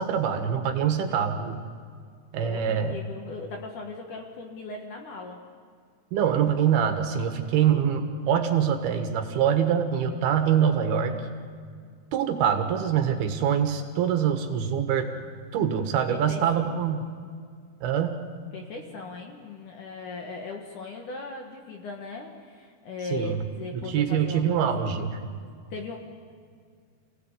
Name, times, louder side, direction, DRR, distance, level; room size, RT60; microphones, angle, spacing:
voice 1, 0.0-1.6 2.3-3.0 6.1-11.1 12.1-15.1 15.5-17.1 17.8-18.2 23.1-23.4 23.7-25.2, right 8 dB, 75° right, 6 dB, 3.3 m, -24 dB
voice 2, 2.4-5.4 16.1-16.8 18.5-24.9 25.7-26.0, left 3 dB, 60° left, 2 dB, 2.6 m, -38 dB
26.5 x 17.0 x 8.3 m, 2.1 s
omnidirectional pair, 4.7 m